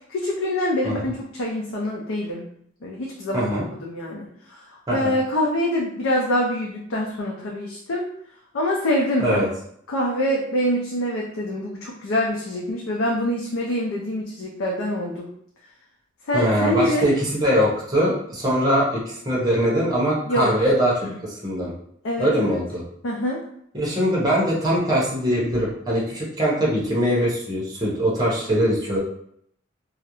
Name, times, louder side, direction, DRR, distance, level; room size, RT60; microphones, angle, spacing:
voice 1, 0.1-2.4 2.8-8.1 8.5-9.4 9.9-15.3 16.3-17.1 20.3-20.5 21.0-21.1 22.0-22.6 23.0-23.4, left 1 dB, 85° left, -2 dB, 0.4 m, -25 dB
voice 2, 16.3-20.9 21.2-21.7 22.2-22.8 23.7-29.0, equal, 20° right, -5 dB, 0.7 m, -22 dB
2.4 x 2.0 x 2.9 m, 0.68 s
head